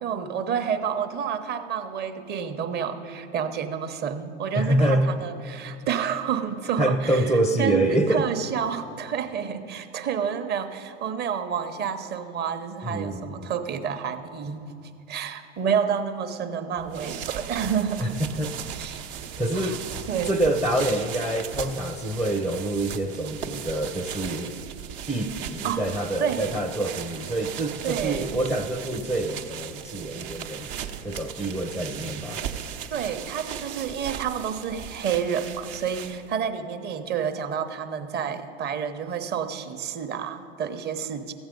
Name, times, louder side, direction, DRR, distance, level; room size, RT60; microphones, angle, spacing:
voice 1, 0.0-7.2 7.6-14.7 15.1-18.1 18.7-19.0 19.5-19.8 20.1-20.4 25.6-25.9 26.2-26.6 27.8-28.4 32.9-41.3, right 7 dB, 30° right, 8 dB, 0.9 m, -29 dB
voice 2, 4.5-5.2 6.8-8.3 12.8-13.5 18.0-18.6 19.4-19.8 20.3-24.5 25.1-30.7 31.0-32.4, right 1 dB, ahead, 7 dB, 0.5 m, -26 dB
sound 1, 16.8-36.4, right 8 dB, 55° right, 0.9 m, -37 dB
14.0 x 8.0 x 5.2 m, 2.4 s
hypercardioid pair, 100°, 33 cm